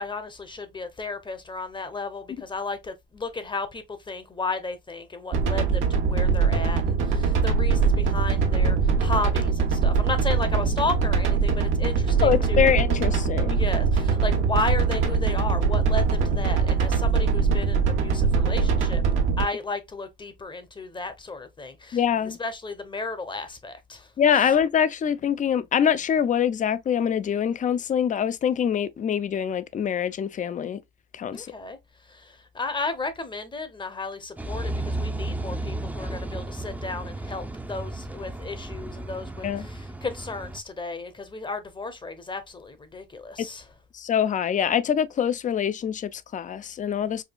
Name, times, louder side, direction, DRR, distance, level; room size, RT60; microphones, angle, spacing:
voice 1, 0.0-12.7 13.5-19.0 19.4-24.1 31.3-31.8 32.1-43.6, left 3 dB, 25° left, 0.8 m, -33 dB
sound 1, 5.3-19.4, right 5 dB, 80° right, 1.0 m, -22 dB
voice 2, 12.2-13.6 21.9-22.4 24.2-30.8 31.1-31.5 39.4-39.7 43.4-43.5 43.9-47.2, left 8 dB, 40° left, 0.4 m, -24 dB
sound 2, 34.4-40.6, right 2 dB, 10° right, 0.5 m, -33 dB
4.9 x 2.4 x 2.3 m
cardioid pair, 90°, 20 cm